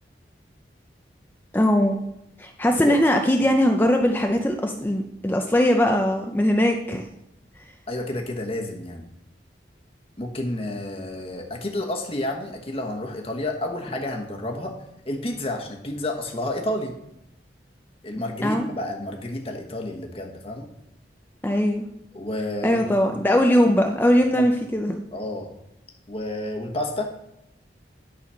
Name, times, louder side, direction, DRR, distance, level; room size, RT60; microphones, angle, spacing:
voice 1, 1.5-2.0 2.4-7.1 18.4-18.7 21.4-21.9 22.6-25.0, equal, 10° left, 3 dB, 0.5 m, -20 dB
voice 2, 7.9-9.1 10.2-14.7 15.0-17.0 18.0-20.7 22.1-23.2 24.4-24.5 25.1-25.5 26.1-27.1, left 1 dB, 35° left, 2 dB, 1.2 m, -30 dB
11.5 x 4.1 x 5.6 m, 0.83 s
head